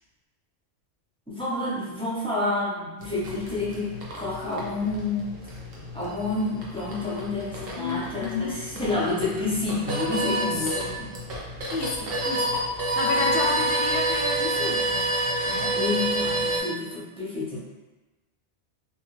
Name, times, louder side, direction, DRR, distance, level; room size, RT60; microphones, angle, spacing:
voice 1, 1.3-5.3 5.9-11.1 15.7-17.6, left 2 dB, 5° left, -9 dB, 0.6 m, -29 dB
sound 1, 3.0-16.6, right 1 dB, 65° right, 0.9 m, -29 dB
voice 2, 7.8-8.5 10.3-10.9 11.7-12.5 12.8-15.0 15.5-15.7, left 3 dB, 70° left, -1 dB, 0.8 m, -31 dB
2.7 x 2.4 x 3.1 m, 1.1 s
omnidirectional pair, 1.1 m